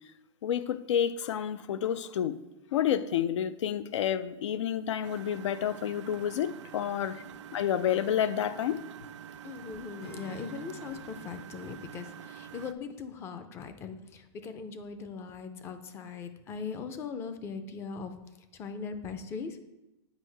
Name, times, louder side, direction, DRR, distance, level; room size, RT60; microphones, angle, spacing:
voice 1, 0.4-2.4 2.7-7.2 7.5-8.8, left 9 dB, 90° left, 0.5 m, -29 dB
Engine, 5.0-12.7, right 9 dB, 90° right, 0.4 m, -46 dB
voice 2, 9.4-18.1 18.5-19.6, left 5 dB, 15° left, 0.4 m, -40 dB
Acoustic guitar / Strum, 10.0-13.1, left 4 dB, 65° left, 1.4 m, -52 dB
8.2 x 5.4 x 3.3 m
supercardioid pair, 160°, 15 cm